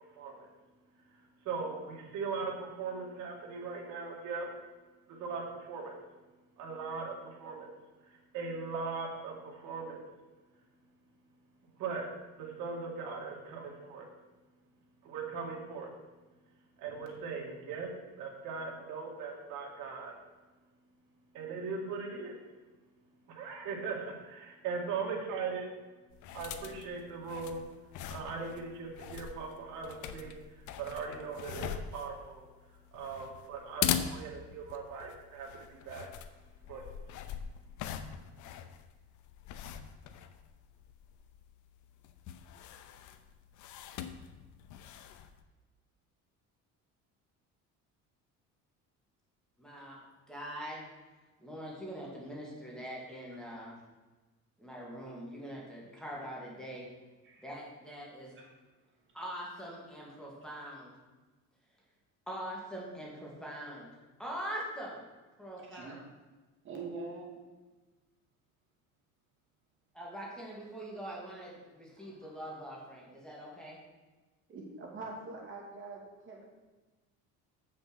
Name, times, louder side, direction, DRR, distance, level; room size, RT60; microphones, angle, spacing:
voice 1, 0.2-0.5 1.4-4.5 5.1-6.0 6.6-7.7 8.3-10.0 11.6-12.1 12.3-14.1 15.0-15.9 16.8-17.9 18.2-20.1 21.3-22.4 23.3-25.7 26.3-27.7 28.1-32.5 32.9-36.1 36.7-36.8, right 5 dB, 70° right, 0 dB, 2.3 m, -39 dB
sound 1, 26.1-45.4, left 9 dB, 65° left, 0.8 m, -42 dB
voice 2, 49.6-50.8 51.4-53.8 54.6-56.9 57.4-58.4 59.1-60.9 62.3-63.9 64.2-65.0 65.4-66.1 69.9-73.8, equal, ahead, -4 dB, 2.2 m, -43 dB
voice 3, 65.6-65.9 66.6-67.4 72.0-72.2 74.5-76.4, right 3 dB, 40° right, -2 dB, 2.7 m, -44 dB
7.6 x 6.2 x 6.2 m, 1.2 s
cardioid pair, 135°, 32 cm